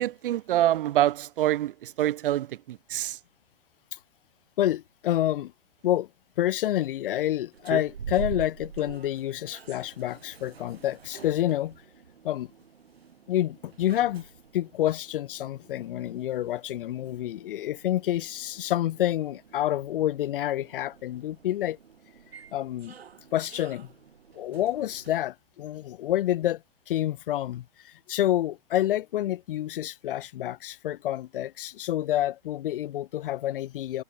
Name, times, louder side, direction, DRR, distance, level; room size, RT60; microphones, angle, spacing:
voice 1, 0.0-3.2, right 13 dB, 60° right, 3.3 m, -26 dB
voice 2, 4.6-5.5 5.8-6.1 6.4-11.7 12.2-12.5 13.3-14.3 14.5-21.8 22.5-22.9 23.3-23.9 24.3-26.6 26.9-34.0, left 13 dB, 60° left, 1.3 m, -28 dB
sound 1, 7.5-25.2, right 7 dB, 85° right, 7.1 m, -44 dB
hypercardioid pair, 125°, 30 cm